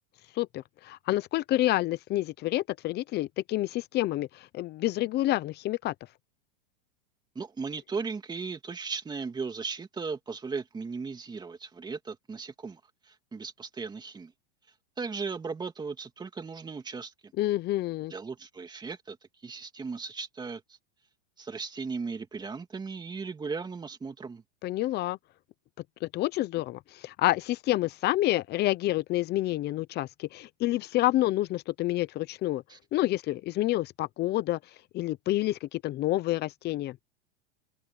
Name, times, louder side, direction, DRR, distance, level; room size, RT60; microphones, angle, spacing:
voice 1, 0.4-5.9 17.4-18.1 24.6-25.2 26.0-32.6 32.9-34.6 34.9-37.0, left 16 dB, 30° left, 0.8 m, -28 dB
voice 2, 7.3-12.8 13.0-14.3 15.0-17.1 18.1-19.2 19.4-20.6 21.4-24.4 32.7-32.8, right 4 dB, 15° right, 2.8 m, -37 dB
supercardioid pair, 135°, 32 cm